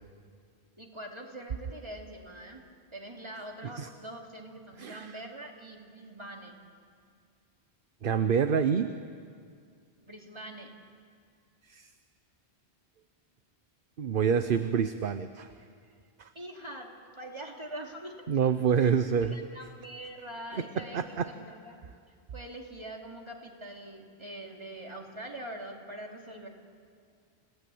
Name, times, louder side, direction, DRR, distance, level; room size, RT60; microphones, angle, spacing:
voice 1, 0.8-2.6 2.9-6.5 10.0-10.7 16.3-18.3 18.8-18.9 19.2-21.8 22.1-26.5, right 1 dB, 25° right, 0 dB, 3.1 m, -43 dB
voice 2, 4.8-5.1 8.0-8.9 11.7-11.9 14.0-15.5 16.2-16.3 18.3-19.4 20.5-20.6 20.9-21.3, right 7 dB, 55° right, 10 dB, 0.9 m, -27 dB
30.0 x 17.5 x 8.6 m, 2.2 s
omnidirectional pair, 1.1 m